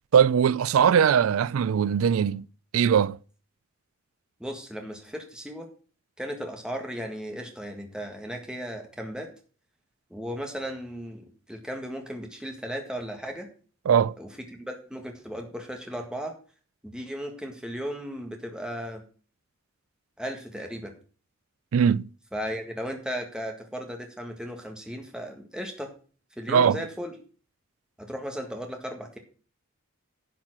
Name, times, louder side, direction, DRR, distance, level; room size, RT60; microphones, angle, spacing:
voice 1, 0.1-2.5 2.7-3.2 13.9-14.1 21.7-22.1 26.5-26.8, right 7 dB, 90° right, 0.4 m, -20 dB
voice 2, 4.4-5.7 6.2-9.3 10.1-13.5 14.2-16.3 16.8-19.0 20.2-20.9 22.3-25.9 26.4-27.1 28.0-29.2, equal, 5° right, 1.7 m, -36 dB
11.0 x 5.8 x 6.0 m
head